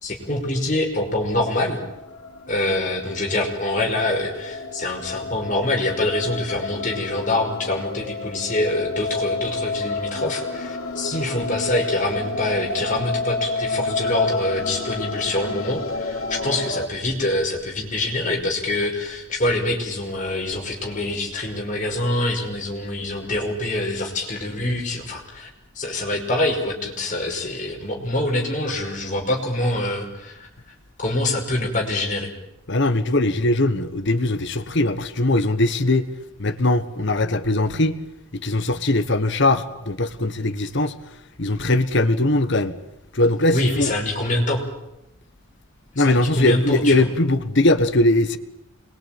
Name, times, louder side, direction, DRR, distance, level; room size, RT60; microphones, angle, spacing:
voice 1, 0.0-1.8 2.5-25.5 25.8-30.5 31.0-32.3 43.5-44.6 46.0-47.1, left 1 dB, 35° left, 5.6 m, -25 dB
sound 1, 1.7-16.9, left 3 dB, 85° left, 3.7 m, -30 dB
voice 2, 32.7-36.0 36.4-38.0 38.4-40.9 41.4-42.7 43.1-44.0 45.9-48.4, left 2 dB, 55° left, 1.4 m, -20 dB
26.5 x 22.5 x 9.1 m
head